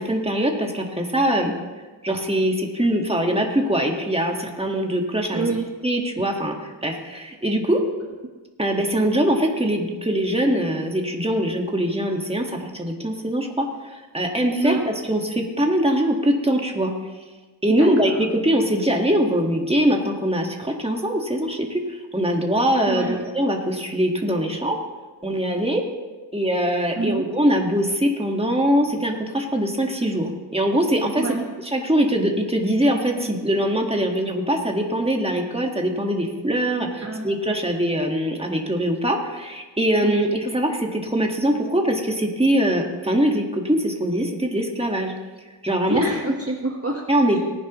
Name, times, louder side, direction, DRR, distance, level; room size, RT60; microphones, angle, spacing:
voice 1, 0.0-1.5 2.0-5.5 5.8-7.8 8.6-16.9 17.6-24.8 25.2-25.8 26.3-31.3 31.6-45.1 45.6-46.0 47.1-47.4, right 1 dB, 10° right, 1 dB, 1.6 m, -22 dB
voice 2, 5.3-5.6 14.6-14.9 17.8-18.2 22.9-23.2 27.0-27.2 31.2-31.4 37.0-37.3 40.0-40.1 45.9-47.0, right 2 dB, 30° right, 0 dB, 1.3 m, -26 dB
18.5 x 10.0 x 3.1 m, 1.3 s
wide cardioid pair, 50°, 49 cm